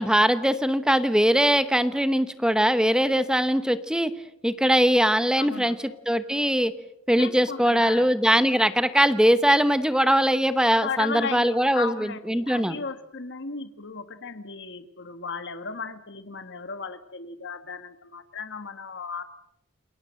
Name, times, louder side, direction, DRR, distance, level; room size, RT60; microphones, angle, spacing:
voice 1, 0.0-4.1 4.4-5.8 6.1-6.7 7.1-11.9 12.3-12.7, equal, 5° right, 12 dB, 1.0 m, -21 dB
voice 2, 5.4-5.8 7.2-8.1 10.8-19.2, left 5 dB, 55° left, 10 dB, 1.7 m, -35 dB
28.5 x 21.0 x 7.6 m, 0.82 s
head